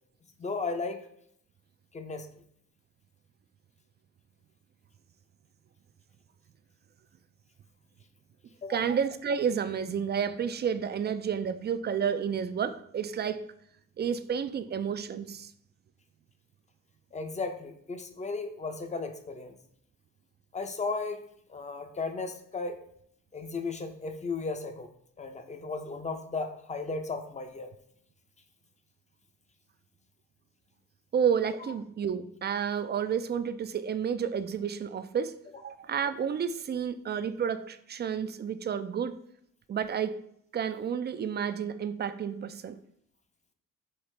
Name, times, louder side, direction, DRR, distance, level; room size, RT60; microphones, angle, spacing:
voice 1, 0.4-1.0 1.9-2.3 8.6-8.8 17.1-19.6 20.5-21.2 21.5-22.8 23.3-24.9 25.2-27.7, left 3 dB, 25° left, 7 dB, 0.6 m, -35 dB
voice 2, 8.7-13.4 14.0-15.5 31.1-39.2 39.7-40.2 40.5-42.8, right 7 dB, 35° right, 11 dB, 0.4 m, -30 dB
5.6 x 2.8 x 3.2 m, 0.70 s
cardioid pair, 70°, 29 cm